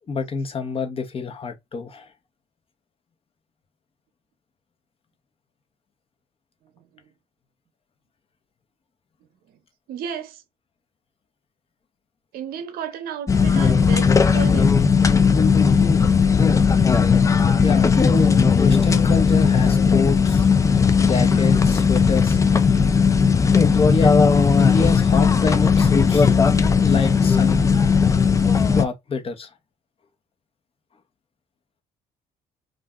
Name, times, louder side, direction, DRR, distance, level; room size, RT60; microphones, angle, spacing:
voice 1, 0.1-2.1 17.6-20.5 21.0-22.4 23.7-24.2 24.6-26.3 26.8-27.6 28.7-29.5, left 4 dB, 35° left, 0.9 m, -27 dB
voice 2, 6.8-7.1 9.9-10.4 12.3-14.7, right 8 dB, 75° right, 0.7 m, -33 dB
sound 1, 13.3-28.8, left 5 dB, 20° left, 0.4 m, -17 dB
2.5 x 2.2 x 3.5 m
cardioid pair, 90°, 16 cm